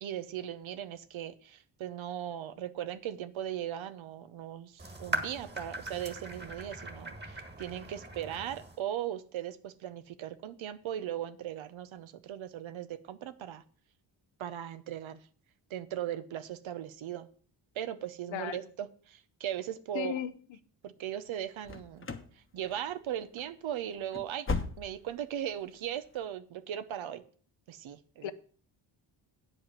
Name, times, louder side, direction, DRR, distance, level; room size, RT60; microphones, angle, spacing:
voice 1, 0.0-13.6 14.4-15.2 15.7-17.3 17.7-20.1 20.8-22.1 22.5-24.5 24.8-27.2 27.7-28.3, right 11 dB, 75° right, 0.9 m, -38 dB
sound 1, 4.8-8.8, right 1 dB, 20° right, 1.7 m, -40 dB
voice 2, 19.9-20.4 28.2-28.3, left 10 dB, 70° left, 0.9 m, -35 dB
sound 2, 21.6-22.4 22.6-23.1 23.4-23.5 23.9-25.2 25.5-25.6 26.1-26.2, left 3 dB, 25° left, 1.1 m, -37 dB
8.7 x 5.4 x 7.4 m
cardioid pair, 95°, 47 cm